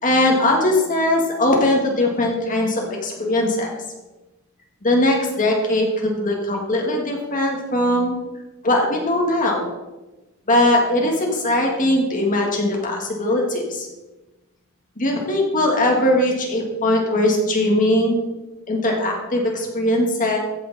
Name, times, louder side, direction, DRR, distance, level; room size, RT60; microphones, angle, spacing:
voice 1, 0.0-3.8 4.8-8.2 8.6-9.7 10.5-13.9 15.0-18.2 18.7-20.4, left 1 dB, 40° left, 0 dB, 1.7 m, -20 dB
15.5 x 6.6 x 4.1 m, 1.1 s
head